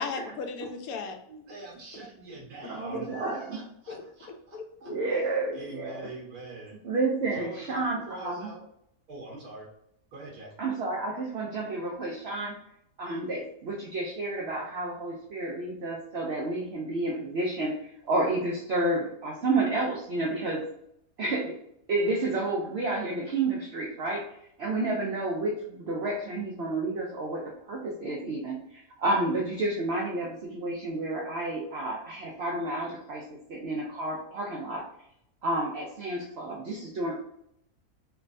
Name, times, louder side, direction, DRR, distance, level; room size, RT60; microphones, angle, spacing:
voice 1, 0.0-1.2 2.9-3.3 3.9-4.0 4.5-4.9, left 4 dB, 75° left, 5 dB, 1.0 m, -36 dB
voice 2, 1.3-4.9 5.5-6.7 7.3-8.6 9.1-9.7 10.1-10.5, right 2 dB, 80° right, -3 dB, 1.5 m, -44 dB
voice 3, 2.7-3.6 4.9-6.1 6.8-8.5 10.6-12.6 13.0-20.6 21.2-21.6 21.9-34.8 35.4-37.2, right 2 dB, 60° right, -2 dB, 0.7 m, -30 dB
3.3 x 3.1 x 2.5 m, 0.75 s
omnidirectional pair, 1.6 m